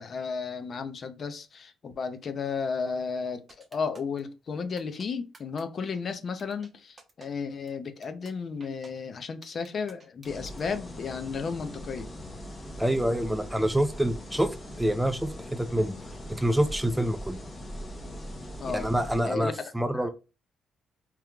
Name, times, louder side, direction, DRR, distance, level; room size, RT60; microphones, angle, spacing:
voice 1, 0.0-3.4 3.7-12.1 18.6-18.9 19.3-19.5 19.9-20.1, left 5 dB, 50° left, 0.6 m, -33 dB
sound 1, 3.5-4.2 4.8-5.1 5.3-5.6 5.9-6.0 6.4-6.7 7.0-7.3 7.7-7.8 8.0-8.3 8.6-8.9 9.4-10.6, right 3 dB, 35° right, 0.8 m, -52 dB
sound 2, 10.2-19.2, equal, 30° left, 1.0 m, -41 dB
voice 2, 12.8-16.0 16.3-17.4 18.7-20.1, right 1 dB, 5° right, 0.6 m, -27 dB
3.5 x 2.9 x 2.3 m
cardioid pair, 90°, 0 cm